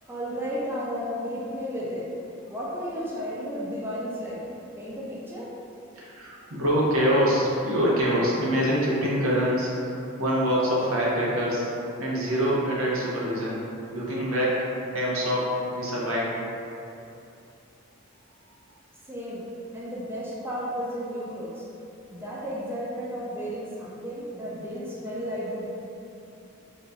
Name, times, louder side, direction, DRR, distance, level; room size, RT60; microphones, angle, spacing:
voice 1, 0.1-2.1 2.5-4.5 4.8-5.5 19.1-19.5 19.7-21.7 22.1-25.6, equal, 10° right, -7 dB, 0.4 m, -33 dB
voice 2, 6.0-11.7 12.0-13.6 13.9-16.3, equal, 75° right, -5 dB, 0.9 m, -25 dB
3.9 x 2.3 x 4.0 m, 2.8 s
head